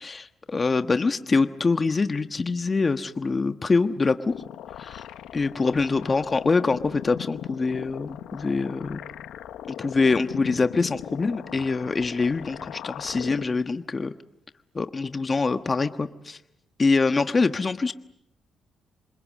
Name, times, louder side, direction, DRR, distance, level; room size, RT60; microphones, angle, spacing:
voice 1, 0.0-4.3 4.8-5.0 5.3-9.0 9.7-14.1 14.7-16.4 16.8-17.9, left 4 dB, 30° left, 8 dB, 1.3 m, -24 dB
sound 1, 4.3-13.4, left 11 dB, 80° left, 1.0 m, -39 dB
27.0 x 26.5 x 7.5 m, 0.83 s
cardioid pair, 90°, 0 cm